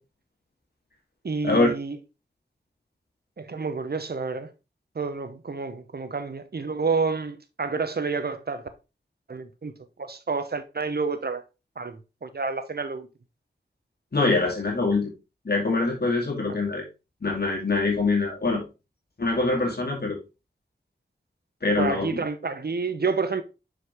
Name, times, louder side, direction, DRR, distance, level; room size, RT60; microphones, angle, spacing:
voice 1, 1.2-2.0 3.4-4.5 4.9-8.7 9.3-9.7 10.0-11.4 11.8-13.1 16.5-16.6 21.8-23.4, right 4 dB, 60° right, 0.9 m, -29 dB
voice 2, 14.1-15.1 15.4-16.8 17.2-18.6 19.2-20.2 21.6-22.2, left 3 dB, 60° left, 2.3 m, -24 dB
6.3 x 4.9 x 3.5 m
wide cardioid pair, 55°, 18 cm